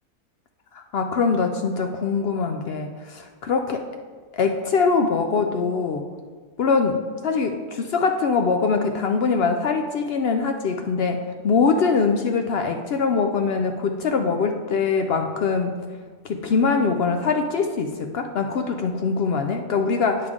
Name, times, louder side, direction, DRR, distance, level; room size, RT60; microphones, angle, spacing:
voice 1, 0.7-3.8 4.3-6.1 6.6-7.0 7.2-15.8 16.2-20.3, left 5 dB, 70° left, 5 dB, 0.6 m, -23 dB
8.6 x 6.5 x 3.6 m, 1.5 s
omnidirectional pair, 1.5 m